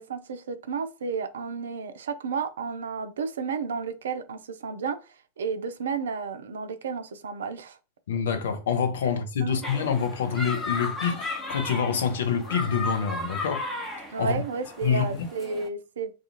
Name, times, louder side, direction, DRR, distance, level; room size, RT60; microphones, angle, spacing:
voice 1, 0.0-5.0 5.4-7.8 9.4-9.6 14.1-16.1, right 5 dB, 65° right, 0.4 m, -32 dB
voice 2, 8.1-13.6 14.2-14.4 14.8-15.3, left 6 dB, 60° left, 0.6 m, -26 dB
sound 1, 9.6-15.7, left 3 dB, 15° left, 0.8 m, -35 dB
2.3 x 2.3 x 2.9 m
figure-of-eight pair, 90°, 0 cm